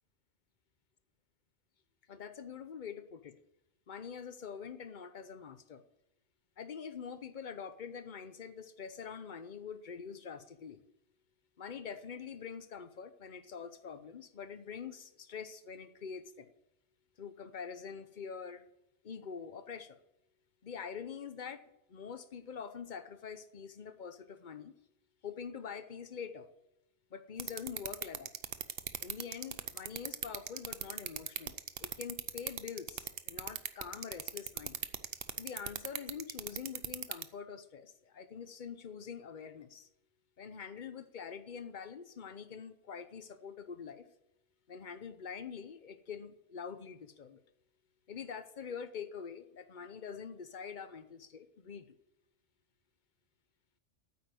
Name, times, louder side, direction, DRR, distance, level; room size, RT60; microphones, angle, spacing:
voice 1, 2.1-3.4 3.9-5.8 6.6-10.8 11.6-16.5 17.2-18.7 19.0-20.0 20.6-24.7 25.2-26.5 27.1-28.3 29.0-34.8 35.4-39.9 40.4-44.1 44.7-47.4 48.1-52.0, left 6 dB, 45° left, 0.9 m, -45 dB
sound 1, 27.4-37.2, right 9 dB, 60° right, 0.9 m, -37 dB
9.2 x 8.2 x 9.2 m
omnidirectional pair, 1.2 m